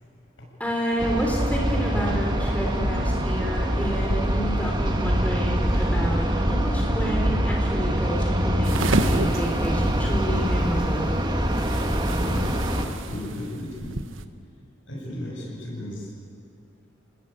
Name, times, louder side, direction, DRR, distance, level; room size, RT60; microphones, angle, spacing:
voice 1, 0.6-11.1, equal, 5° left, -1 dB, 3.5 m, -30 dB
sound 1, 1.0-12.8, equal, 20° right, 2.0 m, -24 dB
sound 2, 3.2-3.6 3.9-4.4 4.8-5.3 5.6-6.1 6.5-6.9 7.2-7.7 8.0-8.4 8.8-9.3 9.6-9.7, equal, 40° right, 2.0 m, -35 dB
sound 3, 8.6-14.2, right 2 dB, 85° right, 1.3 m, -31 dB
voice 2, 12.3-14.0 14.9-16.1, left 1 dB, 75° left, -2 dB, 8.0 m, -36 dB
29.0 x 19.0 x 9.1 m, 2.4 s
head